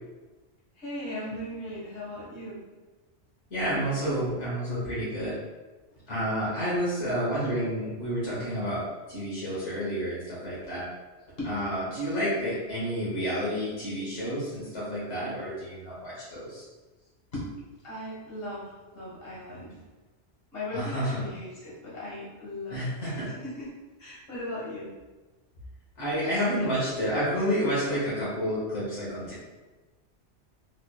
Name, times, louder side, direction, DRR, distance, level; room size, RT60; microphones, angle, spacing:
voice 1, 0.8-2.6 4.8-4.9 11.4-11.5 17.3-17.5 17.8-18.7 18.9-19.8 20.5-23.7 24.0-24.9, left 1 dB, 55° left, -8 dB, 1.5 m, -38 dB
voice 2, 3.5-5.4 6.1-8.8 9.1-10.8 11.4-16.6 20.7-21.2 22.7-23.3 26.0-29.4, equal, 85° left, -8 dB, 1.3 m, -30 dB
3.3 x 3.0 x 2.2 m, 1.2 s
omnidirectional pair, 1.2 m